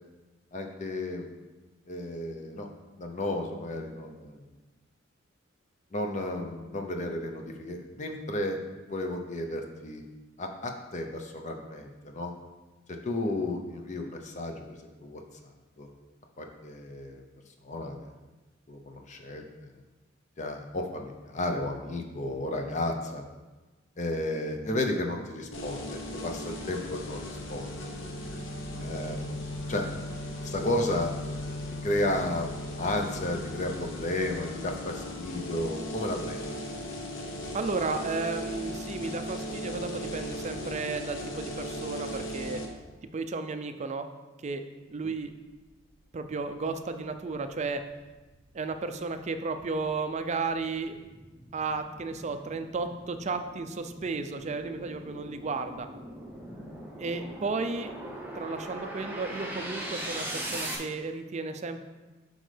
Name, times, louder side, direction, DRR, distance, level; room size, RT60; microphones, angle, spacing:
voice 1, 0.5-1.3 1.9-2.7 3.0-4.4 5.9-8.6 8.9-10.0 10.4-12.3 12.9-15.2 15.8-15.9 16.4-17.2 17.6-18.1 18.7-19.5 20.4-23.2 24.0-27.9 28.8-29.4 29.7-29.9 30.4-31.1 31.8-32.5 32.8-36.6, left 1 dB, 35° left, 3 dB, 0.6 m, -33 dB
sound 1, 25.5-42.7, left 1 dB, 70° left, 0.9 m, -37 dB
voice 2, 37.5-42.6 43.1-44.1 44.4-44.6 44.9-45.3 46.1-47.8 48.5-51.0 51.5-55.9 57.0-57.9 58.3-61.8, right 4 dB, 35° right, 8 dB, 0.4 m, -33 dB
sound 2, 46.0-46.1 46.6-60.8, right 1 dB, 10° right, 0.8 m, -41 dB
7.8 x 5.2 x 3.3 m, 1.2 s
head